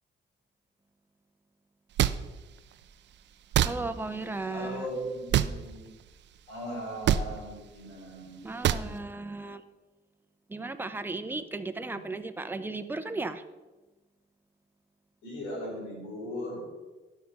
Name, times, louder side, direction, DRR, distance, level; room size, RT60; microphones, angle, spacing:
sound 1, 2.0-2.2 3.5-3.7 5.3-5.5 7.0-7.2 8.6-8.8, right 11 dB, 65° right, 0.5 m, -23 dB
voice 1, 3.6-4.8 8.4-9.6 10.5-13.4, right 3 dB, 10° right, 9 dB, 0.7 m, -35 dB
voice 2, 4.5-5.9 6.5-8.4 11.9-12.0 15.2-16.6, equal, 90° left, -3 dB, 3.8 m, -38 dB
12.0 x 6.0 x 5.4 m, 1.2 s
cardioid pair, 90°, 20 cm